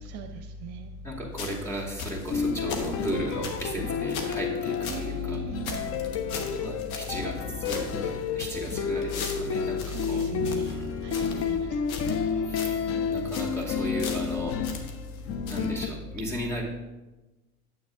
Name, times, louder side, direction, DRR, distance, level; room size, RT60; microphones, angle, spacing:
voice 1, 1.0-5.4 6.6-10.2 10.7-10.9 12.5-12.8 13.1-14.6 15.5-16.6, equal, 5° left, -3 dB, 2.4 m, -35 dB
sound 1, 1.3-5.1 5.3-5.4 5.6-7.4 7.6-11.5 11.9-12.3 12.5-12.8 13.1-13.6 14.0-15.2 15.5-15.6, left 5 dB, 70° left, 1.4 m, -39 dB
sound 2, 2.3-15.9, left 6 dB, 30° left, 0.6 m, -30 dB
voice 2, 4.9-5.9 9.9-10.8 11.0-11.6, right 4 dB, 50° right, 6 dB, 0.7 m, -38 dB
9.4 x 7.6 x 3.6 m, 1.1 s
hypercardioid pair, 80°, 44 cm